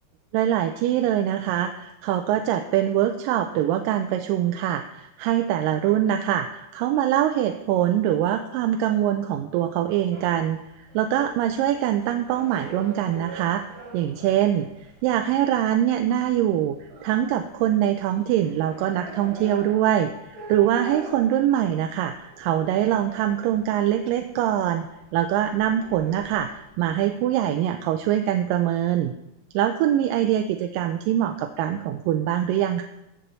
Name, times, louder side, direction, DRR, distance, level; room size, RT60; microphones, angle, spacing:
voice 1, 0.3-10.6 10.9-13.6 13.9-14.7 15.0-16.8 17.0-29.1 29.5-32.8, right 11 dB, 90° right, 7 dB, 2.2 m, -23 dB
sound 1, 10.1-27.3, right 3 dB, 45° right, 4.0 m, -44 dB
13.5 x 7.7 x 4.0 m, 0.91 s
omnidirectional pair, 3.8 m